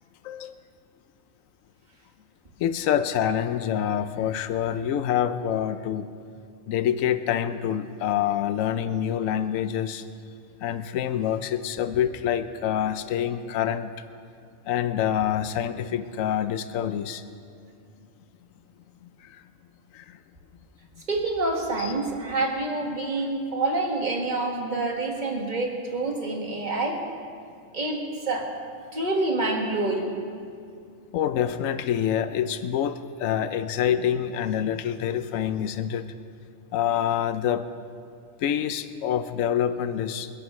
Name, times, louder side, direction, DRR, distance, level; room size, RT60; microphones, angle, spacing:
voice 1, 0.2-0.5 2.6-6.1 6.7-10.0 10.6-13.9 14.7-17.2 19.2-19.4 19.9-20.2 21.8-21.9 31.1-36.1 36.7-37.7 38.4-40.3, left 9 dB, 85° left, 11 dB, 1.0 m, -26 dB
voice 2, 21.1-27.0 27.7-28.5 28.9-30.1, right 2 dB, 35° right, 0 dB, 2.0 m, -27 dB
28.5 x 11.5 x 3.2 m, 2.3 s
omnidirectional pair, 1.3 m